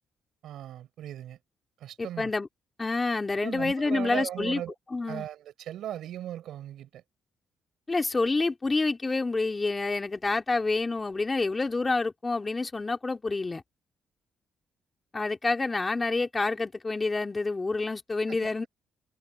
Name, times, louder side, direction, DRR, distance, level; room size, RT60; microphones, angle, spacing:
voice 1, 0.4-1.4 1.8-2.3 3.4-4.7 5.1-7.0 18.3-18.4, right 11 dB, 75° right, 6.9 m, -37 dB
voice 2, 2.0-2.5 2.8-4.6 4.9-5.3 7.9-13.6 15.1-18.7, left 3 dB, 25° left, 3.3 m, -28 dB
cardioid pair, 90°, 0 cm